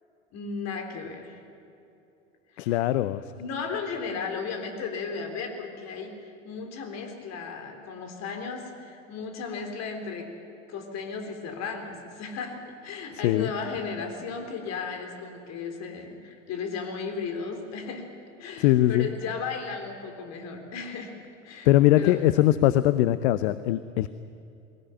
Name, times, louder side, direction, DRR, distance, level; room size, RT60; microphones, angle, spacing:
voice 1, 0.3-1.4 2.6-2.8 3.4-10.3 10.7-18.0 18.4-21.1 21.4-21.7 21.9-22.2, left 5 dB, 45° left, 4 dB, 3.9 m, -35 dB
voice 2, 2.6-3.2 13.2-13.5 18.6-19.1 21.6-24.1, left 14 dB, 60° left, 15 dB, 0.7 m, -21 dB
21.5 x 18.0 x 9.0 m, 2.7 s
figure-of-eight pair, 80°, 38 cm